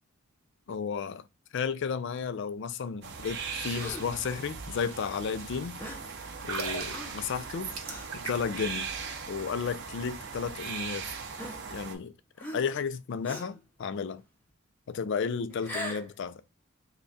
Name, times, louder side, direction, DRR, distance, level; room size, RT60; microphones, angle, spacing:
voice 1, 0.7-1.2 1.5-5.8 6.4-7.7 8.1-8.9 9.3-11.1 11.7-12.1 12.5-14.2 14.9-16.4, left 6 dB, 55° left, 0.3 m, -33 dB
sound 1, 3.0-12.0, right 5 dB, 50° right, 0.6 m, -39 dB
Gasp, 3.7-4.2 5.8-6.1 6.9-7.3 7.8-8.1 8.8-9.0 10.0-10.1 11.3-12.0 12.4-12.8 13.2-13.6 15.5-16.1, equal, 10° left, 0.6 m, -41 dB
sound 2, 6.3-8.7 8.9-9.1, right 4 dB, 85° right, 1.0 m, -38 dB
3.4 x 2.2 x 3.9 m
head